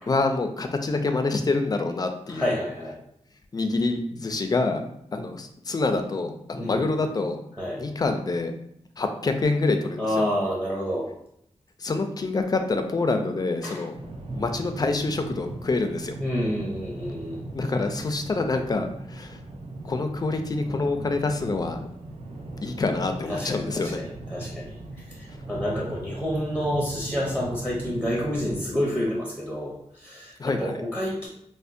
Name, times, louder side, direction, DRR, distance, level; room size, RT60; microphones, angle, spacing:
voice 1, 0.1-2.6 3.5-4.8 5.1-7.4 7.8-8.5 9.0-10.2 11.8-13.9 14.3-16.2 17.5-19.4 19.8-21.8 22.6-24.0 30.4-30.8, left 3 dB, 35° left, 6 dB, 0.3 m, -26 dB
voice 2, 2.3-3.0 6.6-6.8 7.6-7.8 10.0-11.1 13.6-13.8 16.2-17.4 23.3-31.3, equal, 10° right, -4 dB, 0.6 m, -29 dB
sound 1, 13.9-28.7, right 2 dB, 55° right, 0.5 m, -38 dB
4.3 x 2.1 x 2.5 m, 0.75 s
wide cardioid pair, 130°, 12 cm